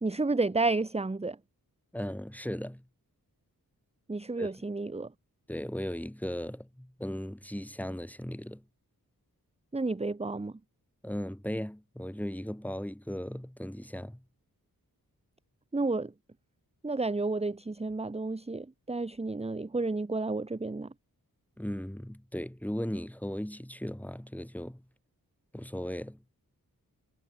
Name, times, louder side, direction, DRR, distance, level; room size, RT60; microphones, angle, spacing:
voice 1, 0.0-1.4 4.1-5.1 9.7-10.5 15.7-16.1 16.8-20.9, right 3 dB, 15° right, 1.0 m, -31 dB
voice 2, 1.9-2.8 4.4-4.5 5.5-8.6 11.0-14.2 21.6-24.8 25.5-26.2, equal, 5° left, 3.3 m, -37 dB
wide cardioid pair, 90°, 36 cm